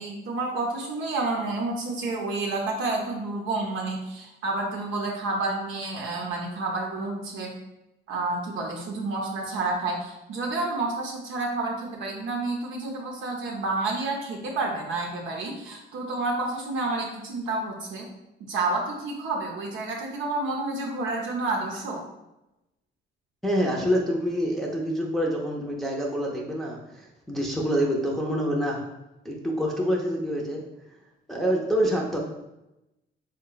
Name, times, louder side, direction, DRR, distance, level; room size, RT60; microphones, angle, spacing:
voice 1, 0.0-7.5 8.1-18.1 18.4-22.0, right 2 dB, 80° right, -1 dB, 0.6 m, -29 dB
voice 2, 23.4-28.8 29.2-30.6 31.3-32.2, equal, ahead, -2 dB, 0.6 m, -26 dB
3.7 x 2.2 x 3.8 m, 0.94 s
cardioid pair, 90°, 20 cm